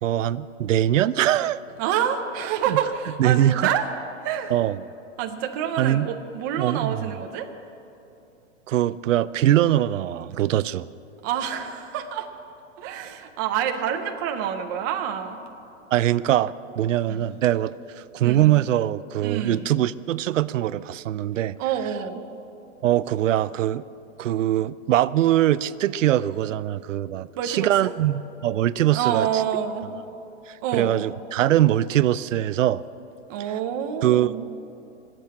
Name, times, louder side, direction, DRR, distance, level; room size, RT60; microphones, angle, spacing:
voice 1, 0.0-1.6 2.7-2.8 3.2-3.7 4.5-4.8 5.8-6.1 6.6-7.0 8.7-10.9 15.9-21.6 22.8-23.8 24.2-29.3 30.5-32.8 34.0-34.3, right 12 dB, 85° right, 17 dB, 0.6 m, -22 dB
voice 2, 1.8-3.9 4.2-4.5 5.2-7.5 11.2-12.3 12.8-15.4 17.1-17.2 18.2-18.6 19.2-19.7 21.6-22.2 27.1-27.9 28.9-29.9 30.6-30.9 33.3-34.4, right 9 dB, 15° right, 5 dB, 0.5 m, -27 dB
19.5 x 7.7 x 8.5 m, 2.8 s
hypercardioid pair, 165°, 37 cm